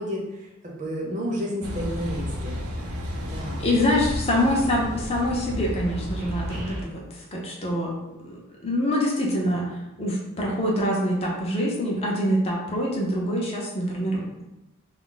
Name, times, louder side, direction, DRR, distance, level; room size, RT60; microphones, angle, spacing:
voice 1, 0.0-2.6 3.2-3.7, equal, 35° right, -3 dB, 0.6 m, -31 dB
sound 1, 1.6-3.3 3.6-6.8, equal, 65° right, 0.9 m, -41 dB
Car passing by / Idling / Accelerating revving vroom, 1.6-6.7, equal, 90° right, 0.6 m, -32 dB
voice 2, 3.6-8.0 8.2-14.4, left 1 dB, 30° left, -3 dB, 0.6 m, -25 dB
2.3 x 2.0 x 3.8 m, 0.97 s
head